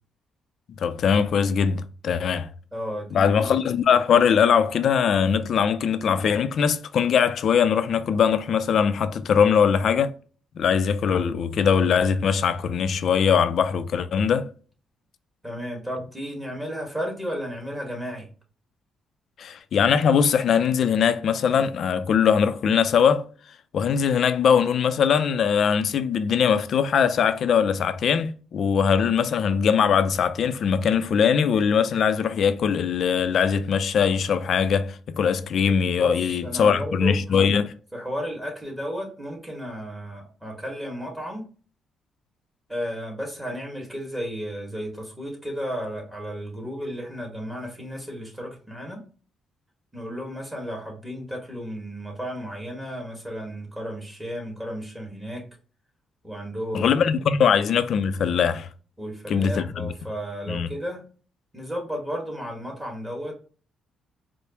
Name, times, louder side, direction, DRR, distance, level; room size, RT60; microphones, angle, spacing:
voice 1, 0.8-2.5 3.1-10.1 10.6-14.5 19.4-23.3 23.7-37.7 56.7-58.7 59.3-59.9 60.5-60.7, left 7 dB, 60° left, 0.4 m, -21 dB
voice 2, 2.7-3.5 15.4-18.3 35.9-37.1 37.9-41.4 42.7-49.0 49.9-55.4 56.2-57.0 59.0-61.0 61.5-63.4, equal, 10° right, 1.6 m, -33 dB
4.7 x 2.0 x 2.9 m
cardioid pair, 90°, 0 cm